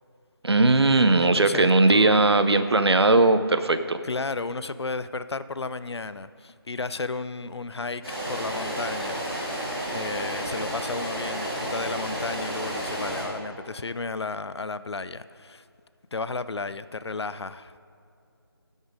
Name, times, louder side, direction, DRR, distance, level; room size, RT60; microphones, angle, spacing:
voice 1, 0.4-4.0, right 2 dB, 80° right, 0.6 m, -19 dB
voice 2, 1.2-2.2 4.0-8.0 8.3-15.6 16.1-17.8, left 3 dB, 85° left, 0.4 m, -33 dB
sound 1, 8.0-13.2, right 1 dB, 5° right, 2.4 m, -31 dB
11.5 x 5.5 x 5.1 m
figure-of-eight pair, 160°, 13 cm